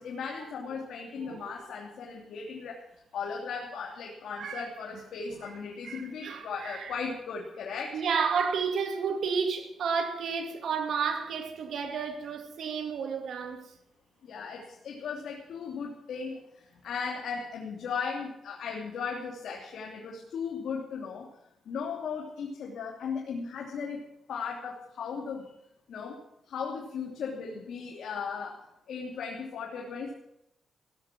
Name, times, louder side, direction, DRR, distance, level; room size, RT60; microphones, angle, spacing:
voice 1, 0.0-2.8 3.1-8.0 14.2-21.3 21.6-24.0 24.3-25.5 25.9-26.2 26.5-28.6 28.9-30.1, left 5 dB, 75° left, 3.0 m, -37 dB
voice 2, 1.2-1.7 4.4-4.7 5.3-5.5 5.8-6.9 7.9-13.7, right 6 dB, 75° right, 2.6 m, -32 dB
16.5 x 14.0 x 6.2 m
cardioid pair, 115°, 0 cm